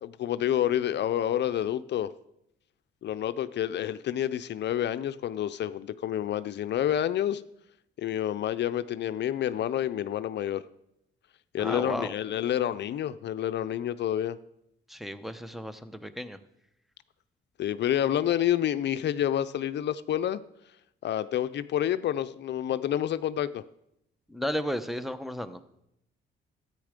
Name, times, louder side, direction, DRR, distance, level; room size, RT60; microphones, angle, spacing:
voice 1, 0.0-2.1 3.0-7.4 8.0-10.6 11.5-14.4 17.6-20.4 21.0-23.6, left 11 dB, 60° left, 0.5 m, -28 dB
voice 2, 11.6-12.1 14.9-16.4 24.3-25.6, equal, ahead, 0.9 m, -33 dB
13.0 x 9.0 x 5.1 m
cardioid pair, 90°, 20 cm